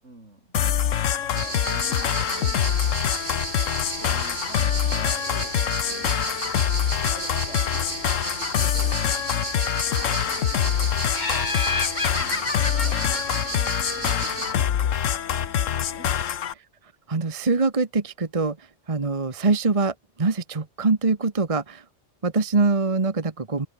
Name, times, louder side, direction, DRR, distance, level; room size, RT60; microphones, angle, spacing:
voice 1, 0.0-0.6 1.2-2.6 3.7-6.2 7.1-9.0 10.0-11.6 12.2-16.3, right 2 dB, 70° right, 5.5 m, -46 dB
sound 1, 0.5-16.5, left 9 dB, 90° left, 1.3 m, -25 dB
sound 2, 1.3-14.5, right 3 dB, 45° right, 2.5 m, -33 dB
Laughter, 11.1-14.4, left 4 dB, 40° left, 1.6 m, -31 dB
voice 2, 17.1-21.8 22.2-23.7, right 3 dB, 30° right, 1.3 m, -24 dB
open air
omnidirectional pair, 1.3 m